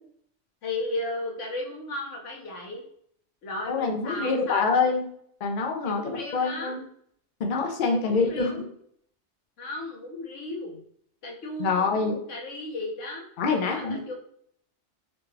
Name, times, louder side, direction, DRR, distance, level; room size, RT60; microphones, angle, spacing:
voice 1, 0.6-2.8 3.4-4.7 5.8-6.8 7.9-8.6 9.6-10.8 11.2-13.2 13.5-14.1, left 2 dB, 85° left, 0 dB, 1.2 m, -35 dB
voice 2, 3.7-5.0 5.4-6.8 7.4-8.5 11.6-12.2 13.4-14.0, left 4 dB, 55° left, 2 dB, 0.7 m, -25 dB
4.0 x 2.2 x 3.4 m, 0.65 s
omnidirectional pair, 1.2 m